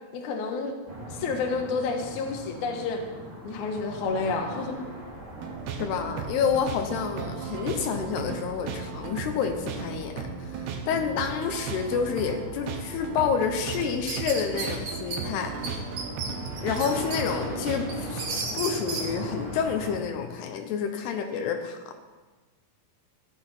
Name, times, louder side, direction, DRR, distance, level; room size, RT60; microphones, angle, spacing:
voice 1, 0.1-0.7 1.2-3.0 3.4-4.7, left 4 dB, 60° left, 2 dB, 2.4 m, -29 dB
sound 1, 0.9-20.0, right 1 dB, 20° right, 1.5 m, -41 dB
sound 2, 5.4-18.2, right 5 dB, 80° right, 3.1 m, -36 dB
voice 2, 5.8-15.9 16.6-22.0, left 7 dB, 80° left, 5 dB, 2.9 m, -29 dB
sound 3, 13.7-15.2 15.6-15.7 16.0-17.2 17.6-19.1, right 4 dB, 55° right, 2.6 m, -33 dB
14.5 x 11.5 x 4.4 m, 1.3 s
omnidirectional pair, 4.7 m